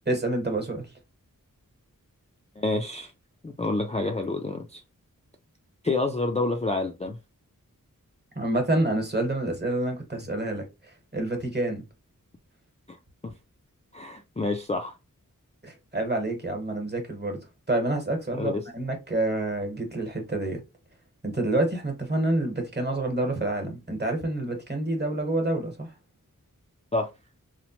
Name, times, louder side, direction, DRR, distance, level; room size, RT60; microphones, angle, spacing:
voice 1, 0.1-0.9 8.3-11.8 15.6-17.4 17.7-20.6 21.2-25.9, right 2 dB, 30° right, 1.0 m, -28 dB
voice 2, 2.6-3.1 3.4-4.8 5.8-7.2 13.2-13.3 13.9-14.9 18.3-18.6 26.9-27.1, left 2 dB, 20° left, 0.3 m, -28 dB
3.1 x 2.1 x 2.8 m
wide cardioid pair, 55°, 33 cm